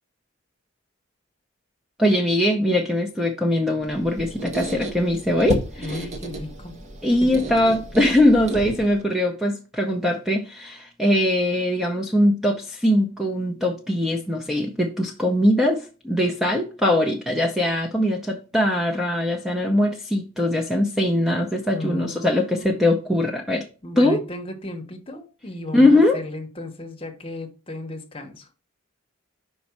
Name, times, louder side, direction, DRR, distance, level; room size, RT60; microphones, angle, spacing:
voice 1, 2.0-6.0 7.0-23.7 24.0-24.2 25.7-26.2, left 1 dB, ahead, 0.5 m, -21 dB
Squeak, 3.8-9.1, right 2 dB, 30° right, 0.8 m, -32 dB
voice 2, 5.8-6.8 7.1-7.4 21.7-22.9 23.8-28.5, left 1 dB, 25° left, 0.9 m, -35 dB
5.3 x 4.1 x 5.9 m
head